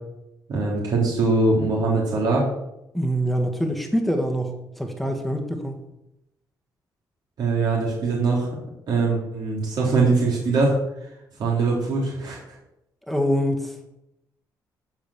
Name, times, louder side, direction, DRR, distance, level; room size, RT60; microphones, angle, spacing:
voice 1, 0.5-2.5 7.4-8.5 8.9-10.8 11.0-11.1 11.4-12.6, right 3 dB, 65° right, -3 dB, 3.4 m, -22 dB
voice 2, 2.9-5.8 13.1-13.9, equal, ahead, 3 dB, 1.5 m, -25 dB
13.5 x 5.1 x 7.2 m, 0.85 s
cardioid pair, 150°, 8 cm